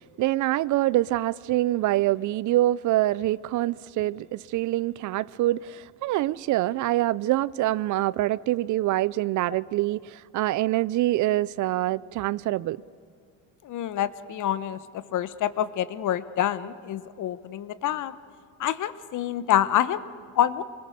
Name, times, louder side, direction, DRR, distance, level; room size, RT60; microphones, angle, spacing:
voice 1, 0.2-12.8, right 16 dB, 55° right, 0.5 m, -25 dB
voice 2, 13.6-14.8 15.1-18.1 18.6-20.0 20.4-20.6, left 11 dB, 55° left, 1.0 m, -26 dB
25.0 x 21.0 x 6.5 m
supercardioid pair, 85°, 37 cm